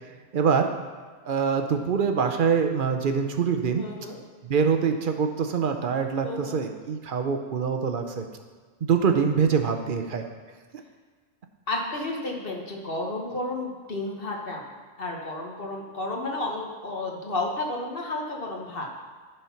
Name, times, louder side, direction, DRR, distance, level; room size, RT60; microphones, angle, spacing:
voice 1, 0.3-0.7 1.3-3.8 4.4-8.3 8.8-10.2, right 6 dB, 50° right, 5 dB, 0.8 m, -24 dB
voice 2, 3.8-4.2 6.2-6.6 11.7-14.6 15.0-19.0, left 2 dB, 45° left, 0 dB, 1.3 m, -32 dB
11.0 x 4.5 x 5.7 m, 1.5 s
omnidirectional pair, 1.3 m